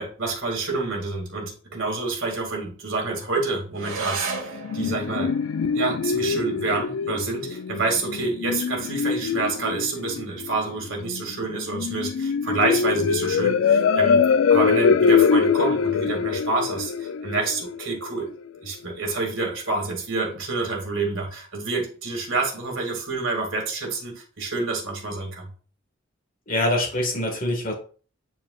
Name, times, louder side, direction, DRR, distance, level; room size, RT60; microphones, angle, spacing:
voice 1, 0.0-5.3 5.7-14.2 14.5-18.3 18.6-25.5, right 3 dB, 65° right, 1 dB, 2.2 m, -28 dB
sound 1, 3.7-12.7, right 4 dB, 85° right, 1.4 m, -39 dB
sound 2, 4.3-18.2, left 6 dB, 75° left, 0.3 m, -23 dB
voice 2, 26.5-27.7, left 1 dB, 40° left, 1 dB, 1.7 m, -24 dB
8.9 x 4.7 x 2.4 m, 0.39 s
head